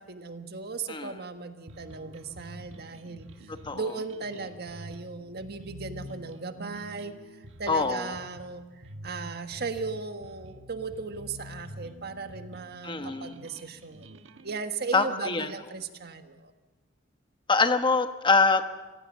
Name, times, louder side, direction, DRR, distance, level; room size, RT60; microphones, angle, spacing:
voice 1, 0.0-8.7 9.0-16.5, right 4 dB, 55° right, 8 dB, 1.5 m, -37 dB
sound 1, 1.7-14.6, right 1 dB, 90° right, 1.4 m, -47 dB
voice 2, 7.7-8.1 12.8-13.3 14.9-15.5 17.5-18.6, left 4 dB, 25° left, 9 dB, 1.1 m, -24 dB
24.5 x 16.5 x 7.4 m, 1.2 s
head